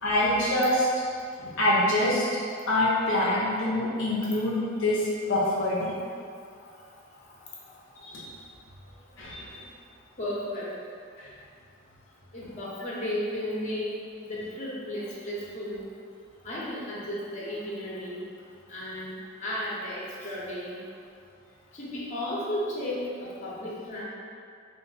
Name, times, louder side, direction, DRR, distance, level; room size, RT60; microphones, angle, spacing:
voice 1, 0.0-0.9 1.4-2.3 2.7-5.9 8.0-8.3 9.2-9.5 11.2-11.3, left 1 dB, 65° left, -6 dB, 0.6 m, -25 dB
voice 2, 10.2-10.7 12.3-14.0 14.2-15.8 16.4-18.2 18.7-19.1 19.4-20.8 21.7-24.0, left 1 dB, 35° left, -6 dB, 0.9 m, -34 dB
3.8 x 2.6 x 4.0 m, 2.3 s
head